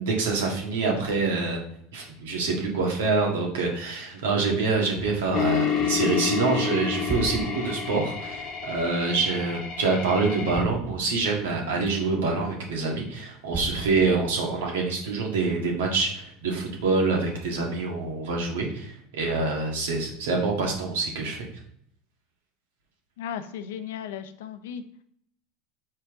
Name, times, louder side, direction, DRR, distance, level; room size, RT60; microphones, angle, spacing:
voice 1, 0.0-1.6 1.9-21.5, right 3 dB, 85° right, 0 dB, 1.7 m, -26 dB
sound 1, 4.9-9.9 10.5-12.9 13.5-15.5 16.0-16.1, right 2 dB, 15° right, 0.8 m, -39 dB
sound 2, 5.3-10.6, left 8 dB, 45° left, 0.9 m, -29 dB
voice 2, 23.2-24.8, left 8 dB, 80° left, 9 dB, 0.6 m, -35 dB
5.6 x 4.7 x 3.7 m, 0.68 s
hypercardioid pair, 100°, 0 cm